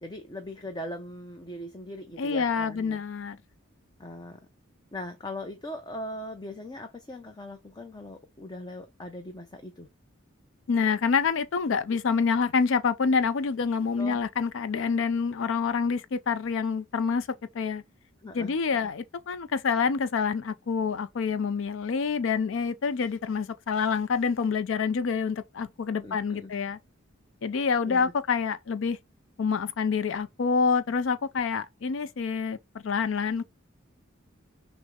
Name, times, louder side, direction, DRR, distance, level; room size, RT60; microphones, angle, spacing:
voice 1, 0.0-3.0 4.0-4.4 4.9-9.9 14.0-14.2 18.2-18.9 26.0-26.5 27.8-28.1, left 1 dB, 20° left, 0.6 m, -40 dB
voice 2, 2.2-3.4 10.7-17.3 17.5-17.8 18.3-26.8 27.4-29.0 29.4-33.4, left 5 dB, 70° left, 0.4 m, -27 dB
6.2 x 2.1 x 3.6 m
head